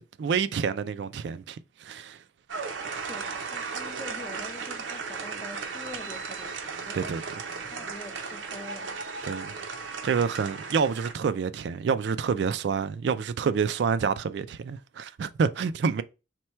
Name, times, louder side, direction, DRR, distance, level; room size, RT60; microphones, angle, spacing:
voice 1, 0.0-2.2 6.9-7.2 9.2-9.5 10.0-16.0, right 6 dB, 65° right, 0.3 m, -28 dB
sound 1, 2.5-11.1, right 5 dB, 80° right, 0.7 m, -36 dB
voice 2, 3.1-7.1 7.7-9.0, left 2 dB, 10° left, 0.4 m, -45 dB
4.4 x 2.2 x 4.2 m
head